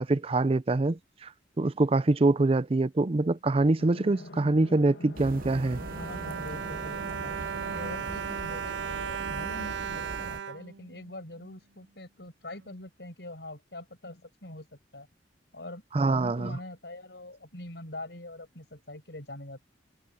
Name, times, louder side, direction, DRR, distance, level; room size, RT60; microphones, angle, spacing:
voice 1, 0.0-1.3 1.6-5.8 15.9-16.6, right 2 dB, 35° right, 0.5 m, -25 dB
sound 1, 3.8-10.1, left 2 dB, 85° left, 2.0 m, -47 dB
sound 2, 5.2-10.4, right 2 dB, 50° right, 1.0 m, -41 dB
Bowed string instrument, 5.3-11.5 12.2-12.3 12.6-12.7, right 7 dB, 80° right, 0.5 m, -36 dB
voice 2, 6.0-7.4 7.7-15.1 15.5-19.6, left 1 dB, 70° left, 7.0 m, -43 dB
head